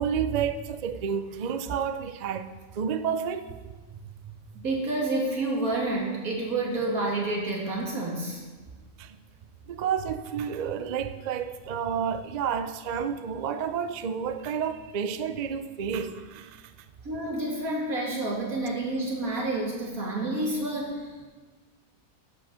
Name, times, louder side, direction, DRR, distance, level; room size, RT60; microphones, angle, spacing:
voice 1, 0.0-2.5 2.7-3.5 9.0-9.2 9.7-16.7, right 7 dB, 65° right, 0.4 m, -30 dB
voice 2, 4.5-8.4 17.0-21.1, right 2 dB, 80° right, 2.7 m, -29 dB
11.5 x 6.2 x 6.2 m
omnidirectional pair, 1.5 m